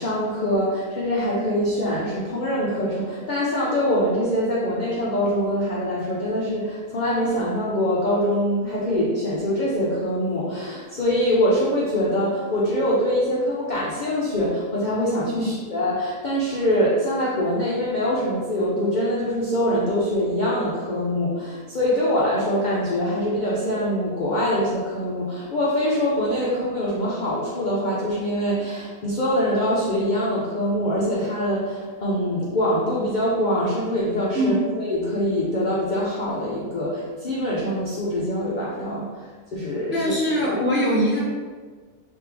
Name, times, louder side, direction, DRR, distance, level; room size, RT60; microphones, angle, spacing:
voice 1, 0.0-40.1, equal, 70° left, -6 dB, 0.4 m, -24 dB
voice 2, 39.9-41.2, equal, 15° right, -6 dB, 0.5 m, -22 dB
3.4 x 3.2 x 3.4 m, 1.5 s
omnidirectional pair, 1.7 m